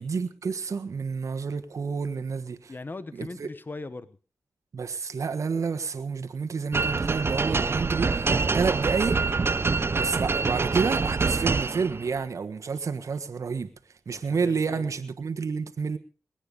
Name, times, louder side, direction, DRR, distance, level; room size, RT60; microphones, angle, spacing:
voice 1, 0.0-2.7 3.1-3.5 4.7-9.2 9.9-13.7 14.1-16.0, right 5 dB, 70° right, 1.3 m, -29 dB
voice 2, 2.7-4.2 14.1-14.9, left 3 dB, 35° left, 1.1 m, -39 dB
sound 1, 6.7-12.1, right 4 dB, 45° right, 0.7 m, -25 dB
21.0 x 9.1 x 5.3 m
cardioid pair, 50°, 6 cm